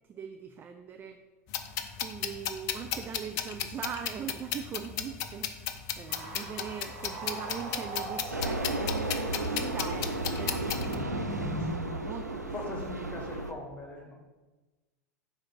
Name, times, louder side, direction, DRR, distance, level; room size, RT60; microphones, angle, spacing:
voice 1, 0.1-1.2 1.6-12.6, right 8 dB, 25° right, 7 dB, 0.4 m, -41 dB
sound 1, 1.5-10.9, left 9 dB, 40° left, 0.5 m, -35 dB
sound 2, 6.1-11.8, right 1 dB, 60° right, 1.4 m, -38 dB
sound 3, 8.3-13.5, right 2 dB, 90° right, 0.5 m, -34 dB
voice 2, 12.3-14.1, left 2 dB, 15° left, 0 dB, 1.6 m, -40 dB
4.9 x 4.1 x 5.9 m, 1.2 s
figure-of-eight pair, 90°, 9 cm